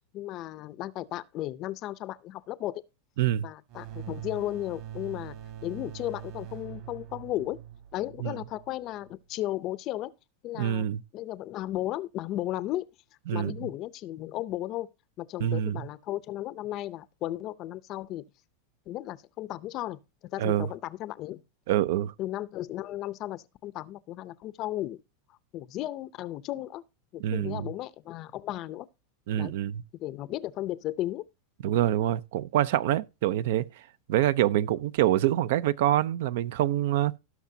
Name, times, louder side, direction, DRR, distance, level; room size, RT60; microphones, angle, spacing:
voice 1, 0.1-2.8 3.4-5.4 5.6-7.6 7.9-10.1 10.4-10.9 11.1-12.8 13.3-14.9 15.2-18.2 18.9-20.0 20.3-21.4 22.2-25.0 25.5-26.8 27.1-28.9 29.4-29.5 29.9-31.2, left 14 dB, 35° left, 0.6 m, -35 dB
sound 1, 3.7-9.1, right 11 dB, 45° right, 2.5 m, -43 dB
voice 2, 10.5-11.0 13.3-13.5 15.4-15.8 20.4-20.7 21.7-22.1 27.2-27.7 29.3-29.8 31.6-33.6 34.1-37.1, right 12 dB, 65° right, 0.6 m, -26 dB
17.5 x 6.0 x 2.7 m
supercardioid pair, 160°, 0 cm